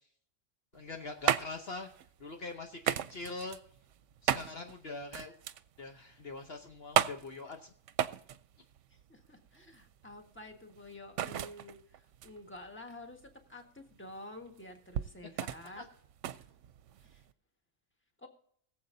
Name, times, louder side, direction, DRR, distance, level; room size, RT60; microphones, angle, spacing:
voice 1, 0.7-1.9 2.2-3.6 4.3-5.3 5.8-7.7 15.8-15.9, left 3 dB, 55° left, 4 dB, 1.1 m, -43 dB
sound 1, 0.7-17.3, right 10 dB, 80° right, 0.9 m, -36 dB
voice 2, 8.9-15.9 16.4-16.5 17.0-17.2 18.2-18.3, left 1 dB, 10° left, 3 dB, 1.5 m, -50 dB
21.5 x 7.5 x 2.7 m, 0.64 s
omnidirectional pair, 1.3 m